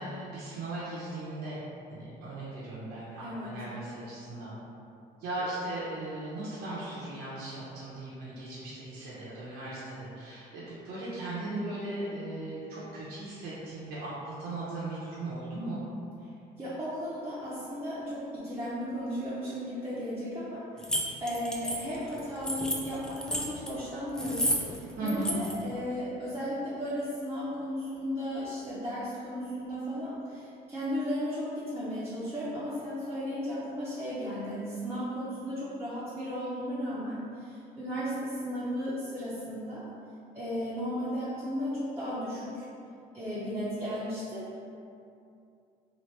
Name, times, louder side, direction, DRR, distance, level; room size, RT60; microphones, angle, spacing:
voice 1, 0.0-1.6 1.9-4.5 5.2-15.8 25.0-25.3, right 2 dB, 70° right, -8 dB, 0.7 m, -37 dB
voice 2, 3.2-3.6 16.6-20.9 21.2-39.8 40.3-42.7 43.1-44.5, equal, 15° right, -12 dB, 0.7 m, -35 dB
sound 1, 20.8-23.7 24.1-24.8 25.0-25.6, equal, 5° left, 0.3 m, -31 dB
3.0 x 2.4 x 3.1 m, 2.6 s
cardioid pair, 110°, 17 cm